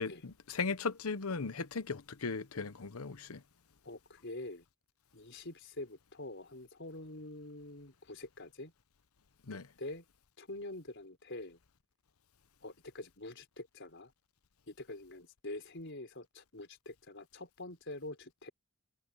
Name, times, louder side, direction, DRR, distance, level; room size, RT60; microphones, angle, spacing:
voice 1, 0.0-3.4 9.5-9.7, left 4 dB, 85° left, 1.0 m, -37 dB
voice 2, 3.8-4.6 5.1-8.7 9.5-10.0 10.4-11.6 12.6-14.1 14.7-18.5, left 2 dB, 60° left, 4.9 m, -46 dB
head